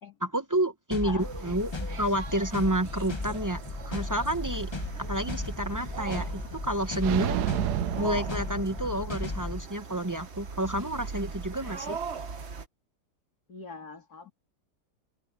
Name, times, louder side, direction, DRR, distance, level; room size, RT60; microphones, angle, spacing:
voice 1, 0.2-3.6 3.8-4.7 5.0-7.5 8.0-12.0, right 1 dB, 15° right, 0.7 m, -30 dB
sound 1, 0.9-9.7, left 3 dB, 20° left, 0.8 m, -36 dB
sound 2, 1.2-12.7, right 5 dB, 45° right, 1.4 m, -40 dB
sound 3, 7.0-9.2, right 14 dB, 75° right, 1.2 m, -31 dB
voice 2, 13.5-14.3, left 4 dB, 60° left, 3.4 m, -42 dB
omnidirectional pair, 1.8 m